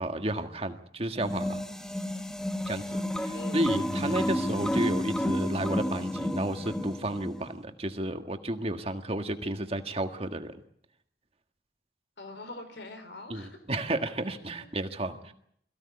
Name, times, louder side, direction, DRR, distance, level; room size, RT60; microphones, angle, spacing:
voice 1, 0.0-1.6 2.6-10.5 13.3-15.3, right 1 dB, 35° right, 7 dB, 1.6 m, -32 dB
sound 1, 1.2-7.5, left 1 dB, 5° left, 1.0 m, -31 dB
voice 2, 3.3-3.7 12.2-13.6 14.6-14.7 15.1-15.3, left 2 dB, 80° left, 8 dB, 4.5 m, -44 dB
sound 2, 3.7-7.3, equal, 60° left, 3.1 m, -44 dB
22.5 x 16.0 x 9.7 m, 0.70 s
head